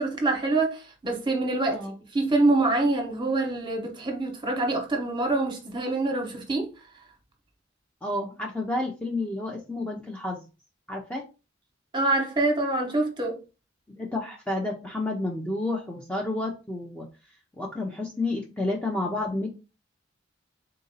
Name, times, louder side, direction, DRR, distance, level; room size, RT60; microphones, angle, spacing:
voice 1, 0.0-1.9 2.1-6.7 11.9-13.4, right 2 dB, 25° right, 1.0 m, -25 dB
voice 2, 8.0-10.4 10.9-11.2 14.0-17.1 17.6-19.5, left 2 dB, 5° left, 0.5 m, -30 dB
3.8 x 2.6 x 3.9 m
head